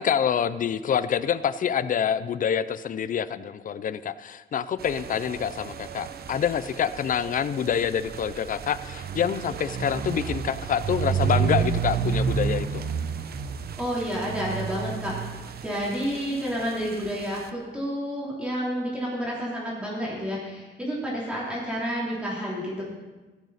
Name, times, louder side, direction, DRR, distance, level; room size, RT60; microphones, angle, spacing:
voice 1, 0.0-12.8, left 8 dB, 45° left, 15 dB, 0.5 m, -26 dB
sound 1, 4.8-17.5, right 7 dB, 55° right, 0.8 m, -31 dB
voice 2, 13.8-15.2 15.6-22.8, equal, 5° right, -6 dB, 3.2 m, -30 dB
15.5 x 9.1 x 4.1 m, 1.2 s
cardioid pair, 125°, 19 cm